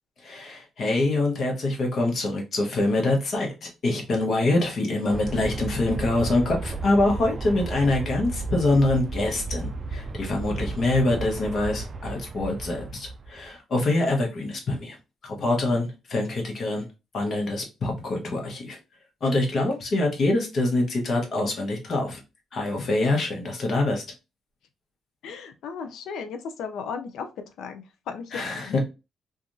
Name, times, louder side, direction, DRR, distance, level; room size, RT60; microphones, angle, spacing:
voice 1, 0.2-15.0 15.2-16.8 17.1-18.8 19.2-22.2 22.5-24.0 28.3-28.8, left 2 dB, 55° left, 1.0 m, -25 dB
Aircraft, 5.1-13.5, right 3 dB, 40° right, 0.3 m, -33 dB
voice 2, 25.2-27.3 27.6-28.8, left 6 dB, 80° left, 0.5 m, -36 dB
2.8 x 2.5 x 2.6 m
cardioid pair, 90°, 0 cm